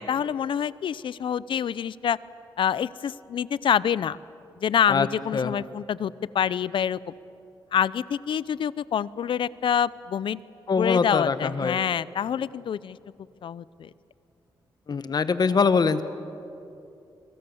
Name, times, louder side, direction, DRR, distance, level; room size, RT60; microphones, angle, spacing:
voice 1, 0.0-2.2 2.6-4.2 4.6-7.0 7.7-10.4 10.8-13.0 13.4-13.9, left 8 dB, 70° left, 19 dB, 0.6 m, -26 dB
voice 2, 10.7-11.8 14.9-16.0, left 5 dB, 50° left, 12 dB, 1.3 m, -23 dB
26.0 x 24.5 x 7.1 m, 2.7 s
cardioid pair, 80°, 9 cm